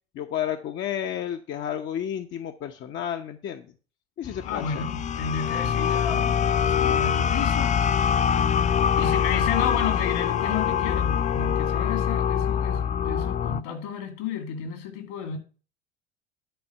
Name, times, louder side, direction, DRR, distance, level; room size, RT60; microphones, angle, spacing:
voice 1, 0.1-3.7 4.2-4.9, left 10 dB, 40° left, 0.8 m, -31 dB
sound 1, 4.2-13.6, left 8 dB, 25° left, 0.5 m, -24 dB
voice 2, 4.4-7.7 9.0-15.4, left 7 dB, 60° left, 2.3 m, -32 dB
10.5 x 4.2 x 6.6 m
hypercardioid pair, 75°, 30 cm